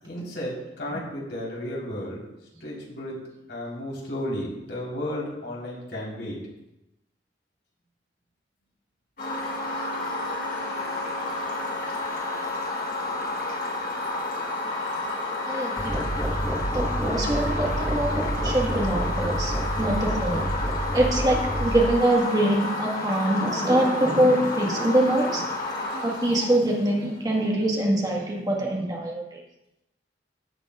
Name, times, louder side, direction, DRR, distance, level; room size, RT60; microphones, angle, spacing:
voice 1, 0.0-2.2 2.6-3.2 3.5-6.4, left 1 dB, 75° left, 3.9 m, -33 dB
sound 1, 9.2-27.2, left 2 dB, 60° left, 4.4 m, -31 dB
voice 2, 15.5-16.0 16.7-20.5 20.9-25.5 26.0-29.4, right 1 dB, 20° right, 1.5 m, -24 dB
sound 2, 15.8-21.8, right 1 dB, 5° right, 1.3 m, -28 dB
16.5 x 8.4 x 2.4 m
head